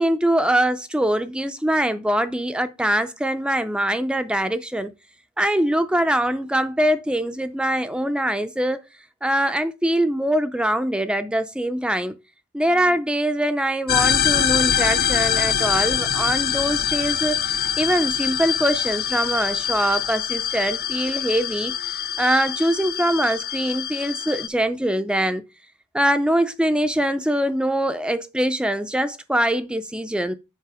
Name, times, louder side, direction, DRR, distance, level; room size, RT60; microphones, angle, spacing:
voice 1, 0.0-4.9 5.4-8.8 9.2-12.1 12.5-17.4 17.8-21.7 22.2-25.4 25.9-30.3, right 1 dB, 5° right, 0.4 m, -23 dB
sound 1, 13.9-24.5, left 9 dB, 45° left, 0.6 m, -24 dB
7.5 x 4.9 x 4.8 m
head